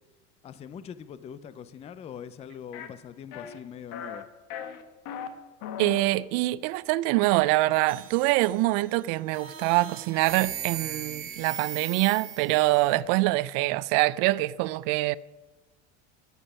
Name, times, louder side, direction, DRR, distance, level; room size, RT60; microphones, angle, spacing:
voice 1, 0.4-4.3, left 8 dB, 20° left, 0.4 m, -42 dB
sound 1, 2.7-2.9 3.3-3.6 3.9-4.2 4.5-5.3 5.6-6.0, left 8 dB, 60° left, 1.2 m, -37 dB
voice 2, 5.8-15.2, right 19 dB, 65° right, 0.5 m, -24 dB
sound 2, 7.9-8.8 9.3-13.0, right 9 dB, 35° right, 2.0 m, -38 dB
12.5 x 8.1 x 5.5 m
supercardioid pair, 125°, 37 cm